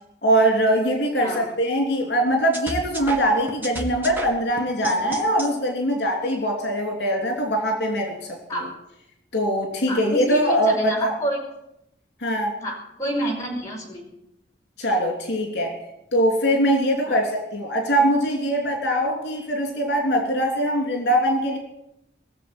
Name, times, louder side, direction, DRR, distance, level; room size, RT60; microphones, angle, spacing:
voice 1, 0.2-8.4 9.3-11.1 12.2-12.5 14.8-15.7 16.1-21.6, equal, 75° left, 2 dB, 3.2 m, -22 dB
sound 1, 2.5-5.5, right 1 dB, 10° right, 1.9 m, -33 dB
voice 2, 9.9-11.4 12.6-14.0 17.0-17.2, equal, 20° left, -3 dB, 5.1 m, -29 dB
20.5 x 7.2 x 8.8 m, 0.83 s
head